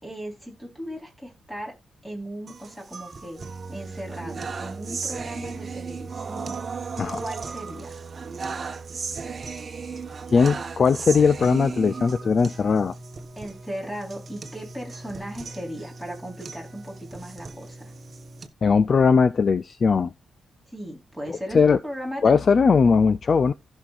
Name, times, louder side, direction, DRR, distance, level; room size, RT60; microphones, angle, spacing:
voice 1, 0.0-1.7 2.0-3.4 3.7-6.6 7.1-8.0 13.4-17.9 20.7-22.4, equal, 10° left, 4.1 m, -37 dB
sound 1, 2.5-18.5, right 4 dB, 35° right, 1.2 m, -36 dB
voice 2, 10.3-13.0 18.6-20.1 21.5-21.8 22.2-23.5, left 5 dB, 40° left, 0.4 m, -19 dB
15.5 x 6.2 x 2.5 m
cardioid pair, 130°, 0 cm